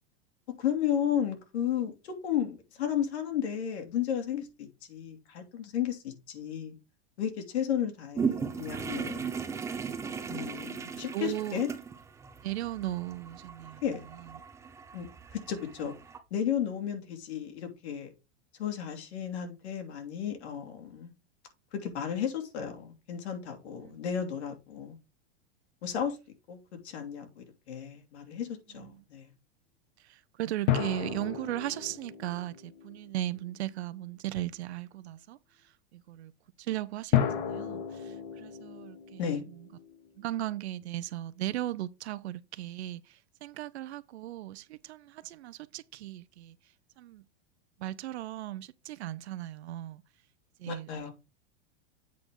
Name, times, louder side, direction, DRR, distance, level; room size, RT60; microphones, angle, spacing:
voice 1, 0.6-6.7 7.2-9.3 10.3-11.7 13.8-14.1 14.9-15.1 15.3-15.9 16.3-18.1 18.6-21.1 21.7-25.0 25.8-26.2 26.5-26.6 26.8-29.3 39.2-39.4 50.7-51.1, left 9 dB, 85° left, 2.8 m, -33 dB
sound 1, 8.1-16.2, right 6 dB, 10° right, 0.7 m, -37 dB
voice 2, 10.1-10.5 11.1-11.6 12.4-14.3 23.8-24.0 28.7-29.0 30.0-35.4 35.9-36.3 36.6-39.7 40.2-46.6 47.0-47.2 47.8-50.0 50.6-51.1, right 14 dB, 80° right, 0.8 m, -37 dB
sound 2, 30.7-33.5 37.1-40.5, left 10 dB, 50° left, 1.4 m, -33 dB
8.2 x 5.0 x 3.8 m
supercardioid pair, 160°, 32 cm